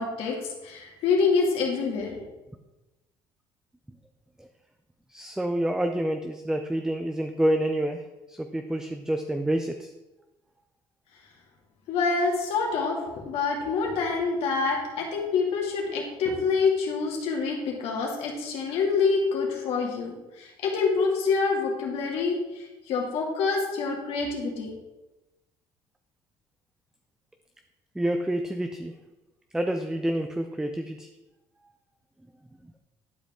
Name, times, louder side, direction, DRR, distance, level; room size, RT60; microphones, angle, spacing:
voice 1, 0.0-2.2 11.9-24.8, left 4 dB, 70° left, -1 dB, 2.2 m, -26 dB
voice 2, 5.1-8.0 8.3-9.9 28.0-28.9 29.5-31.1, right 1 dB, 5° right, 6 dB, 0.5 m, -28 dB
11.5 x 5.0 x 3.7 m, 1.1 s
supercardioid pair, 90°, 11 cm